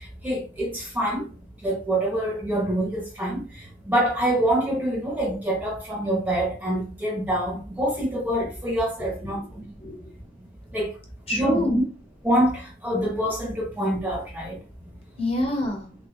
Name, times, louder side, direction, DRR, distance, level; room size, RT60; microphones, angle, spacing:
voice 1, 0.2-1.3 1.6-3.4 3.9-9.4 10.7-10.9 11.3-11.6 12.2-14.6, right 1 dB, 10° right, 0.8 m, -25 dB
voice 2, 9.0-10.0 11.3-11.8 15.2-15.9, left 1 dB, 30° left, 1.1 m, -27 dB
3.5 x 2.2 x 4.0 m
head